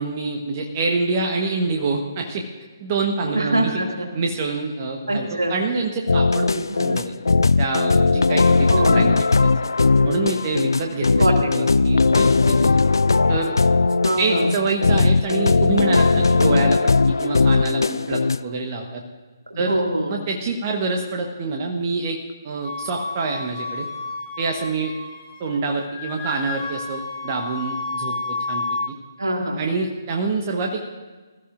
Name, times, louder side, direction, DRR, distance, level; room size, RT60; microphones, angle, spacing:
voice 1, 0.0-2.4 2.8-3.7 4.1-7.1 7.6-9.1 9.4-9.5 10.0-11.2 11.5-12.8 13.3-13.6 14.2-19.0 19.6-19.8 20.1-22.2 22.4-23.9 24.4-24.9 25.4-28.9 29.6-30.9, right 3 dB, 30° right, 2 dB, 1.1 m, -26 dB
voice 2, 3.3-4.1 5.1-5.6 6.7-7.0 8.7-9.1 11.2-11.5 14.0-14.5 19.5-20.2 29.2-29.8, right 1 dB, 75° right, 1 dB, 2.3 m, -24 dB
sound 1, 6.1-18.4, left 4 dB, 70° left, 0.3 m, -18 dB
Wind instrument woodwind instrument, 22.6-25.5 25.8-28.9, left 3 dB, 25° left, 3.4 m, -31 dB
20.0 x 13.0 x 2.5 m, 1.3 s
figure-of-eight pair, 140°, 2 cm